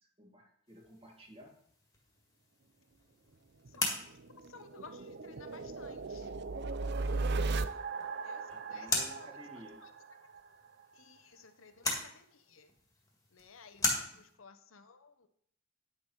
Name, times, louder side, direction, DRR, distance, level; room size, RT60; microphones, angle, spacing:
voice 1, 0.2-1.6 8.5-9.8 13.9-14.4, equal, 30° right, 0 dB, 2.1 m, -54 dB
sound 1, 0.7-14.4, left 2 dB, 15° left, 1.8 m, -41 dB
sound 2, 3.7-10.5, right 3 dB, 55° right, 0.5 m, -37 dB
voice 2, 4.5-6.3 8.2-9.3 9.8-9.9 10.9-12.7 13.3-15.3, left 5 dB, 80° left, 10 dB, 0.8 m, -56 dB
9.7 x 6.5 x 4.6 m, 0.67 s
head